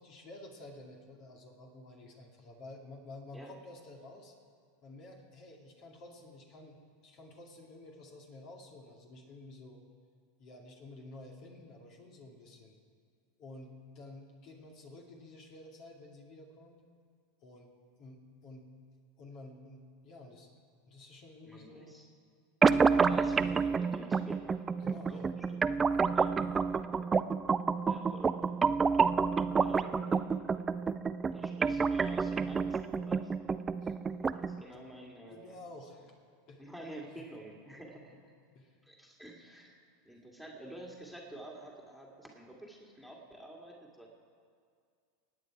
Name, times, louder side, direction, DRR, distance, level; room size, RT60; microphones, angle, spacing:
voice 1, 0.0-4.3 4.8-6.8 7.0-9.8 10.4-12.8 13.4-16.8 17.4-18.7 19.2-20.5 20.9-21.9 24.8-25.3 33.8-34.0 34.7-34.8 35.3-36.2 36.5-36.7 37.2-37.3 38.5-38.8 39.1-39.2, left 2 dB, 45° left, 1 dB, 2.3 m, -51 dB
voice 2, 21.4-22.1 22.9-24.7 25.1-25.2 25.5-25.6 26.1-26.4 27.9-28.3 29.5-30.5 31.3-33.3 34.3-35.6 36.6-38.3 38.8-44.1, right 1 dB, ahead, 0 dB, 2.3 m, -49 dB
sound 1, 22.6-34.6, right 5 dB, 20° right, 0.4 m, -29 dB
25.5 x 9.3 x 4.8 m, 2.2 s
figure-of-eight pair, 85°, 0 cm